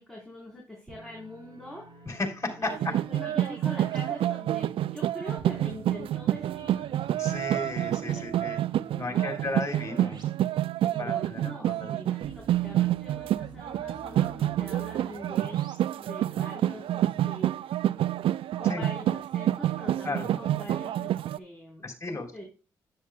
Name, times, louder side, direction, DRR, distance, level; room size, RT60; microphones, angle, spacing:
voice 1, 0.0-2.0 2.6-7.1 8.1-8.7 9.0-9.4 10.9-15.7 15.9-17.6 18.6-22.5, equal, 5° left, -3 dB, 4.3 m, -43 dB
sound 1, 0.9-4.0 5.4-10.2 10.6-10.7 12.2-15.8, right 2 dB, 50° right, 3.2 m, -50 dB
voice 2, 2.1-2.9 7.2-8.6 9.0-10.2 11.0-11.9 18.7-18.9 20.0-20.3 21.8-22.3, left 2 dB, 30° left, 4 dB, 3.8 m, -34 dB
sound 2, 2.7-21.4, right 12 dB, 70° right, 0.4 m, -28 dB
10.0 x 9.2 x 2.3 m, 0.33 s
supercardioid pair, 45°, 10 cm